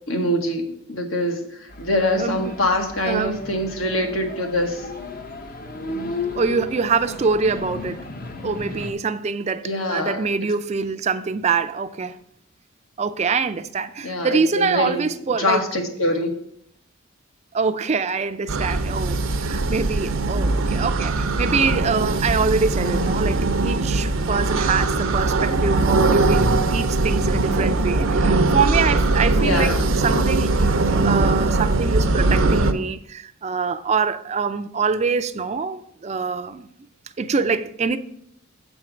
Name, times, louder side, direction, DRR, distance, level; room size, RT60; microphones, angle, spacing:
voice 1, 0.1-1.5 1.8-4.9 9.6-10.2 14.0-15.1 15.4-16.3 29.4-29.8, left 1 dB, 75° left, 1.3 m, -24 dB
sound 1, 1.7-8.9, left 2 dB, 45° left, 0.7 m, -34 dB
voice 2, 2.2-2.6 3.1-3.5 6.4-8.0 8.4-12.2 13.0-15.7 17.5-36.7 37.2-38.0, right 5 dB, 30° right, 0.4 m, -24 dB
sound 2, 18.5-32.7, right 2 dB, 75° right, 0.6 m, -20 dB
7.8 x 4.4 x 6.0 m
head